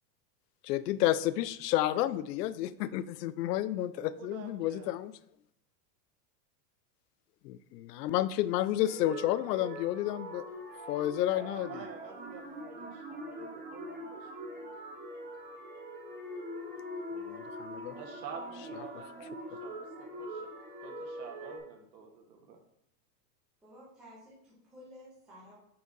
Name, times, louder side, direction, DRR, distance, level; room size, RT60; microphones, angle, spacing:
voice 1, 0.6-5.1 7.4-10.4 10.9-11.7 17.3-18.0, left 13 dB, 75° left, 0.5 m, -31 dB
voice 2, 3.9-4.9 11.3-14.6 17.9-20.5 20.8-22.6, right 6 dB, 80° right, 1.5 m, -49 dB
sound 1, 8.8-21.6, equal, 20° right, 1.0 m, -43 dB
voice 3, 23.6-25.5, equal, ahead, 0.3 m, -53 dB
5.6 x 5.3 x 3.9 m
supercardioid pair, 160°, 50 cm